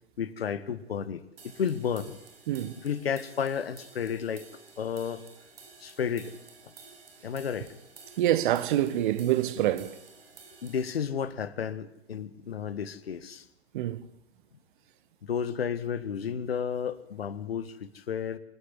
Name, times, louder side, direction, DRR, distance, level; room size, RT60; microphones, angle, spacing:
voice 1, 0.2-2.2 2.8-4.5 4.8-5.2 5.8-6.3 6.6-6.7 7.2-7.7 10.6-13.4 15.2-18.4, left 7 dB, 75° left, 1.7 m, -32 dB
sound 1, 1.4-11.0, right 4 dB, 70° right, 7.8 m, -52 dB
voice 2, 8.2-10.0 13.7-14.0, right 13 dB, 55° right, 1.6 m, -26 dB
27.0 x 10.0 x 9.8 m
figure-of-eight pair, 105°, 31 cm